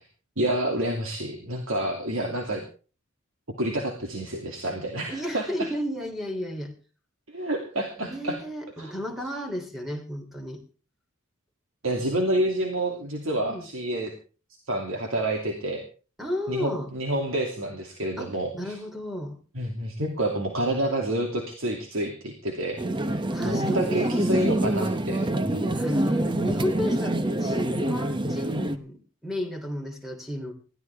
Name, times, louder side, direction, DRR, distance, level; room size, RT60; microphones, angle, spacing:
voice 1, 0.4-2.6 3.6-5.7 7.3-8.4 8.8-8.9 11.8-14.1 14.7-15.8 16.5-18.7 19.5-25.7, right 1 dB, 70° right, 1 dB, 2.8 m, -29 dB
voice 2, 5.1-6.7 8.0-10.6 13.4-13.6 16.2-16.9 18.2-18.3 18.6-19.4 23.3-24.4 25.7-30.5, equal, ahead, 3 dB, 3.4 m, -33 dB
sound 1, 22.8-28.8, right 1 dB, 25° right, 1.0 m, -26 dB
20.0 x 15.0 x 3.6 m, 0.37 s
head